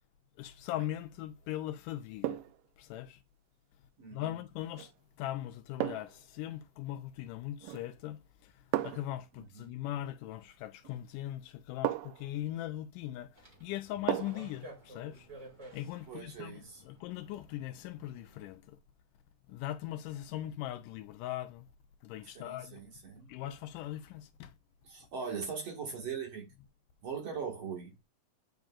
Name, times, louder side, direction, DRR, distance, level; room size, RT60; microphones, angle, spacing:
voice 1, 0.4-2.4 2.8-3.2 4.1-4.9 5.2-15.3 15.7-18.8 19.5-21.7 22.0-22.8 23.3-24.5, left 13 dB, 80° left, 2.0 m, -40 dB
sound 1, 0.7-1.0 2.2-2.7 4.7-4.9 5.8-6.3 7.6-8.0 8.7-9.2 10.8-11.0 11.8-12.3 14.1-14.5 14.9-15.0, right 14 dB, 85° right, 2.2 m, -36 dB
voice 2, 4.0-4.4 9.3-9.7 16.1-16.8 22.3-23.3 24.8-26.5 27.0-27.9, right 6 dB, 50° right, 2.6 m, -40 dB
sound 2, 13.3-18.5, right 1 dB, 25° right, 1.9 m, -54 dB
9.1 x 5.2 x 2.4 m
omnidirectional pair, 3.9 m